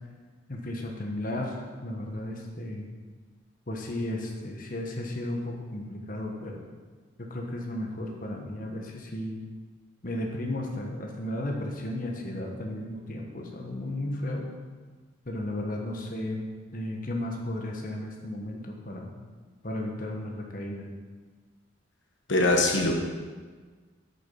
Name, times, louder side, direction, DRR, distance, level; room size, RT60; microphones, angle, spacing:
voice 1, 0.5-2.9 3.7-6.6 7.2-9.4 10.0-14.4 15.3-16.4 16.7-19.1 19.6-20.9, left 1 dB, 45° left, 0 dB, 1.3 m, -34 dB
voice 2, 22.3-23.0, left 2 dB, 75° left, 1 dB, 1.2 m, -22 dB
9.1 x 7.0 x 5.4 m, 1.4 s
head